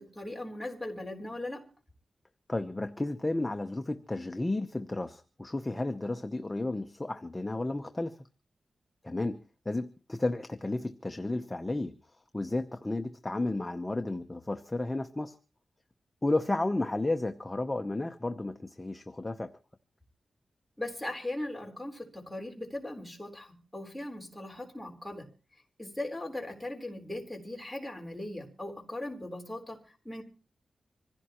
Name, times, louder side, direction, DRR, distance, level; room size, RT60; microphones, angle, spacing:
voice 1, 0.0-1.7 20.8-25.3 25.8-30.2, left 1 dB, ahead, 3.9 m, -39 dB
voice 2, 2.5-8.2 9.0-11.9 12.3-15.3 16.2-19.5, left 2 dB, 15° left, 0.8 m, -32 dB
25.5 x 16.0 x 3.0 m
wide cardioid pair, 155°, 0 cm